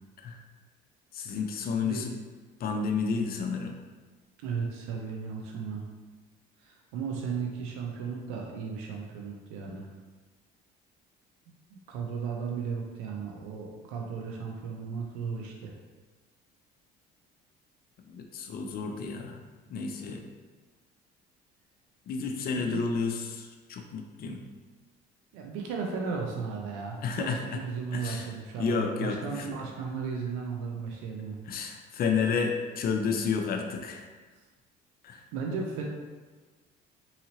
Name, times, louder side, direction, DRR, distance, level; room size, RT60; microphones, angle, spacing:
voice 1, 1.1-2.1 2.6-3.7 18.0-19.4 19.7-20.2 22.1-24.4 27.0-27.6 27.9-28.3 28.6-29.6 31.5-34.1 35.0-35.2, left 5 dB, 45° left, 4 dB, 0.5 m, -31 dB
voice 2, 4.4-5.8 6.6-9.9 11.9-15.7 22.6-22.8 25.3-31.4 35.3-35.8, right 5 dB, 80° right, 0 dB, 0.5 m, -35 dB
2.7 x 2.7 x 2.8 m, 1.3 s
supercardioid pair, 75°, 21 cm